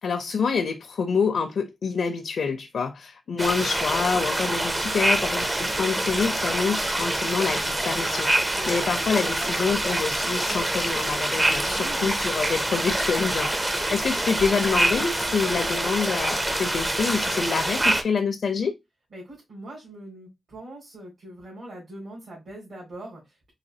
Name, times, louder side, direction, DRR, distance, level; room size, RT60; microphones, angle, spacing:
voice 1, 0.0-18.7, left 5 dB, 75° left, 0.5 m, -27 dB
sound 1, 3.4-18.0, right 1 dB, 20° right, 0.5 m, -26 dB
voice 2, 8.5-9.0 11.6-12.1 19.1-23.5, right 1 dB, 65° right, 2.1 m, -42 dB
4.1 x 2.7 x 2.7 m
wide cardioid pair, 125°, 0 cm